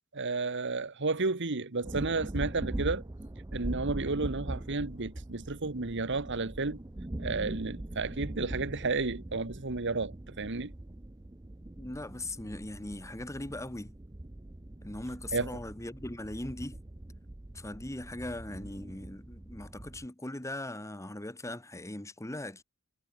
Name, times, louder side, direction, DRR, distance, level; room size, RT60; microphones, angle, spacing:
voice 1, 0.1-3.0 3.5-6.8 7.2-10.7 15.3-15.5, right 3 dB, 60° right, 1.5 m, -32 dB
sound 1, 1.8-20.1, right 1 dB, 15° right, 0.6 m, -42 dB
voice 2, 11.8-13.9 14.8-16.8 17.5-22.6, left 1 dB, 15° left, 1.4 m, -39 dB
head